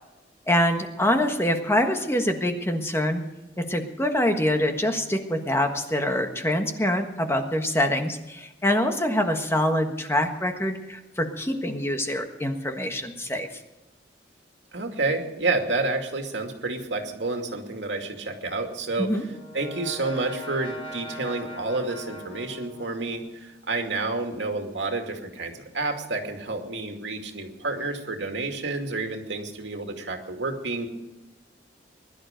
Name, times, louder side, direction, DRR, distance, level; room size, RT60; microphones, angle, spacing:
voice 1, 0.5-3.2 3.6-13.5 19.0-19.2, left 1 dB, 15° left, 5 dB, 1.4 m, -25 dB
voice 2, 14.7-19.1 19.5-30.9, right 3 dB, 85° right, 3 dB, 2.4 m, -29 dB
Brass instrument, 18.7-23.5, equal, 30° left, 4.3 m, -41 dB
21.0 x 12.0 x 5.2 m, 1.0 s
head